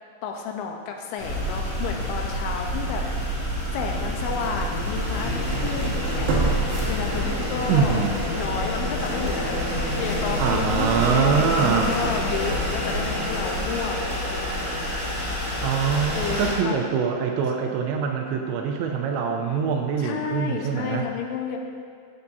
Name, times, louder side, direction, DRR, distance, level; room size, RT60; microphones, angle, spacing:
voice 1, 0.2-3.3 3.7-6.3 6.9-8.0 8.3-14.7 16.2-16.9 20.0-21.6, left 6 dB, 85° left, 2 dB, 3.1 m, -31 dB
sound 1, 1.2-16.5, equal, 30° left, 1.5 m, -27 dB
sound 2, 3.0-3.1 3.7-3.8 6.3-7.7 8.1-8.2, right 3 dB, 65° right, 2.7 m, -26 dB
voice 2, 7.7-8.1 10.4-11.9 15.6-21.1, right 6 dB, 80° right, 3 dB, 2.8 m, -24 dB
13.0 x 7.1 x 2.6 m, 2.2 s
omnidirectional pair, 5.3 m